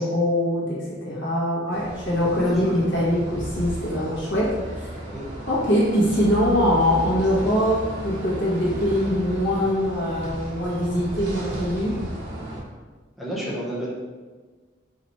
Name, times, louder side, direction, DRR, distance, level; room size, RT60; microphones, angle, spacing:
voice 1, 0.0-5.0 5.5-12.0, equal, 90° left, -6 dB, 1.5 m, -23 dB
sound 1, 1.7-12.6, right 1 dB, 90° right, 0.9 m, -34 dB
voice 2, 2.3-2.9 5.1-5.2 13.2-13.9, right 1 dB, ahead, -8 dB, 0.9 m, -31 dB
5.1 x 2.9 x 3.1 m, 1.4 s
head